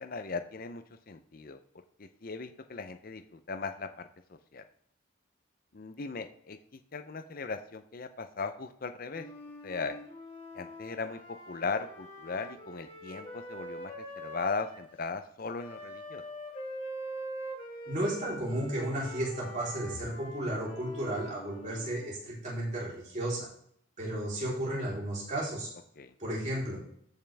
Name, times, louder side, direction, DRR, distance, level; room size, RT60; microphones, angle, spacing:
voice 1, 0.0-1.6 2.0-4.6 5.7-9.3 9.6-10.0 10.5-16.2 26.0-26.1, left 4 dB, 45° left, 9 dB, 0.6 m, -38 dB
Wind instrument woodwind instrument, 9.1-14.9 15.6-22.1, equal, 25° left, 2.0 m, -44 dB
voice 2, 17.9-23.5 24.0-25.7 26.2-26.8, right 1 dB, 35° right, -6 dB, 3.7 m, -33 dB
14.0 x 5.6 x 3.4 m, 0.66 s
head